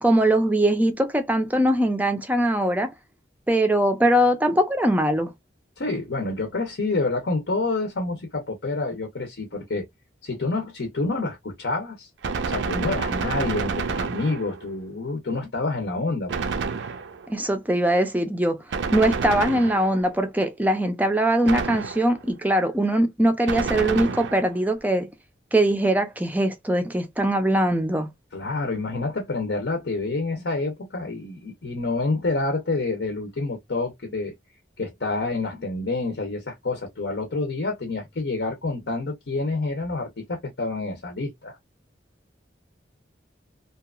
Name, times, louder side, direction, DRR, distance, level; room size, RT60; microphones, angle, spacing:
voice 1, 0.0-2.9 3.5-5.3 17.3-18.6 18.9-25.1 25.5-28.1, right 1 dB, 10° right, 0.4 m, -21 dB
voice 2, 5.8-9.8 10.2-12.1 12.5-16.5 28.3-34.3 34.8-41.6, left 3 dB, 70° left, 0.7 m, -28 dB
Gunshot gunfire, 12.2-14.7 16.3-17.3 18.7-20.1 21.5-22.3 23.5-24.6, right 5 dB, 75° right, 0.4 m, -29 dB
2.8 x 2.3 x 2.3 m
head